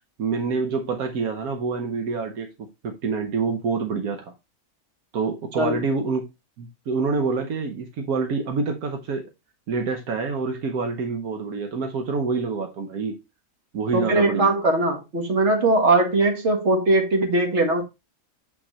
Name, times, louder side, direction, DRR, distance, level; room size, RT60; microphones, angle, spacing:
voice 1, 0.2-4.3 5.1-6.3 6.6-9.3 9.7-13.2 13.7-14.5, right 4 dB, 85° right, 1.4 m, -27 dB
voice 2, 13.9-17.8, right 2 dB, 50° right, 1.7 m, -20 dB
8.7 x 4.4 x 3.1 m
omnidirectional pair, 1.5 m